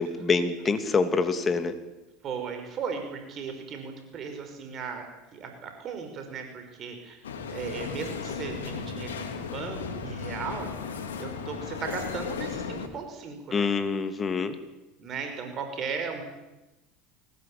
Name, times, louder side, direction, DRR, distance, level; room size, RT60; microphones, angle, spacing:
voice 1, 0.0-1.7 13.5-14.6, left 4 dB, 30° left, 9 dB, 3.0 m, -26 dB
voice 2, 2.2-5.0 5.3-7.2 7.5-10.7 11.2-13.7 15.0-16.2, right 6 dB, 45° right, 5 dB, 5.4 m, -36 dB
sound 1, 7.2-12.9, left 6 dB, 85° left, 2.9 m, -35 dB
22.0 x 19.5 x 8.8 m, 1.0 s
hypercardioid pair, 80°, 0 cm